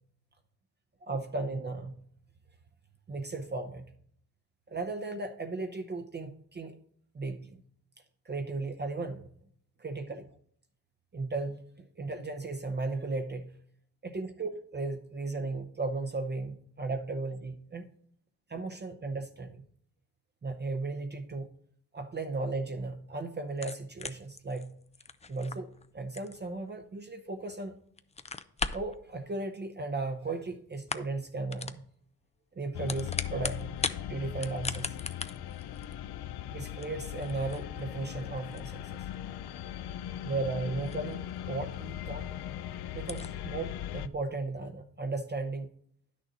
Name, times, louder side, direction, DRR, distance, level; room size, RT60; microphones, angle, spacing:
voice 1, 1.0-1.9 3.1-3.8 4.7-6.8 7.1-7.6 8.3-9.3 9.8-10.2 11.1-11.6 12.0-13.5 14.0-17.9 18.5-19.6 20.4-21.5 21.9-24.7 25.3-27.7 28.7-31.8 32.6-33.8 34.1-35.0 36.5-39.0 40.2-42.3 42.9-45.7, right 3 dB, 30° right, 7 dB, 0.7 m, -36 dB
sound 1, 23.5-27.5 27.9-29.0 30.0-30.5 30.7-31.2 31.5-31.8 32.6-34.0 34.3-41.4 41.7-41.8 42.3-42.4 42.5-42.6 43.0-43.3, left 4 dB, 20° left, 0.4 m, -39 dB
sound 2, 32.7-44.1, left 11 dB, 80° left, 0.6 m, -39 dB
10.5 x 6.5 x 4.0 m, 0.63 s
cardioid pair, 105°, 38 cm